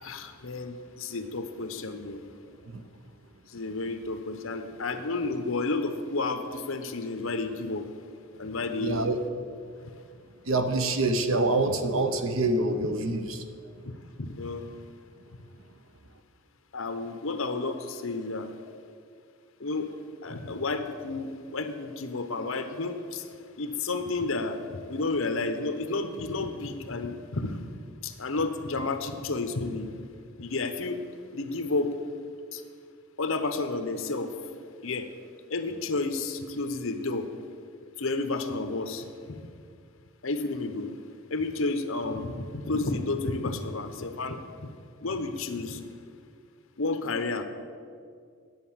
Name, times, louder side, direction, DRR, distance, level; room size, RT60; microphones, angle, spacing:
voice 1, 0.0-2.2 3.5-7.9 8.4-9.1 14.2-14.7 16.7-18.5 19.6-19.9 20.2-23.3 23.6-27.6 28.0-29.9 30.4-31.0 31.3-31.9 32.5-32.6 33.2-34.3 34.8-35.1 35.5-37.3 38.0-39.4 40.2-40.9 41.3-44.4 45.0-45.8 46.8-47.4, left 3 dB, 70° left, 8 dB, 0.9 m, -31 dB
voice 2, 8.8-9.2 10.5-13.4, right 2 dB, 70° right, 8 dB, 0.9 m, -26 dB
10.5 x 7.9 x 7.4 m, 2.2 s
head